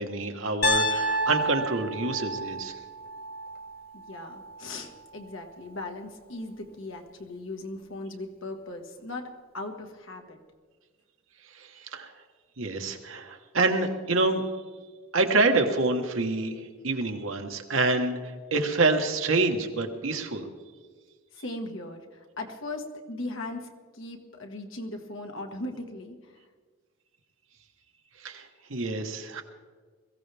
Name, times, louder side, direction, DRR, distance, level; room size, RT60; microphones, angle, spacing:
voice 1, 0.0-2.7 11.5-12.1 12.6-14.4 15.1-16.6 16.8-20.4 28.2-29.4, right 3 dB, 85° right, 4 dB, 1.4 m, -27 dB
Piano, 0.6-4.7, equal, 50° left, 1.3 m, -30 dB
voice 2, 3.9-10.4 21.3-26.4, left 2 dB, 80° left, 3 dB, 1.7 m, -38 dB
22.0 x 15.0 x 3.5 m, 1.5 s
head